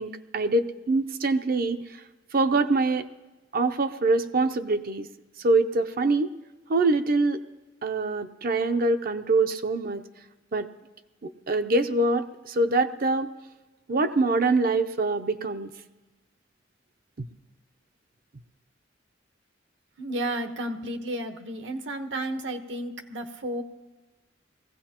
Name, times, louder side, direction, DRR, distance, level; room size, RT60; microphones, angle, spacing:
voice 1, 0.0-2.0 2.3-3.1 3.5-5.1 5.4-6.3 6.7-7.4 7.8-10.0 10.5-10.7 11.2-13.3 13.9-15.7 17.2-17.3, right 3 dB, 50° right, 8 dB, 0.6 m, -24 dB
voice 2, 20.0-23.6, right 1 dB, 75° right, 6 dB, 1.1 m, -32 dB
21.5 x 15.5 x 2.9 m, 1.1 s
head